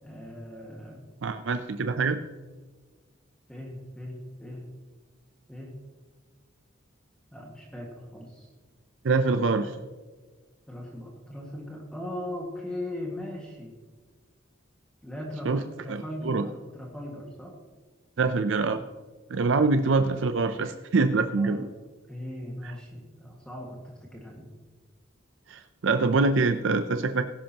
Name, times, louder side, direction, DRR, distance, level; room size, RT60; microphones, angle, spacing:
voice 1, 0.0-1.1 3.5-4.7 5.5-5.8 7.3-8.5 9.3-9.7 10.7-13.8 15.0-17.5 19.3-19.5 19.8-20.2 21.1-21.7 22.1-24.5, left 1 dB, 5° left, -2 dB, 1.8 m, -39 dB
voice 2, 1.2-2.2 9.0-9.7 15.5-15.6 15.9-16.5 18.2-18.8 19.3-21.7 22.6-22.7 25.5-27.3, right 3 dB, 70° right, 9 dB, 0.5 m, -25 dB
18.0 x 10.5 x 2.9 m, 1.4 s
head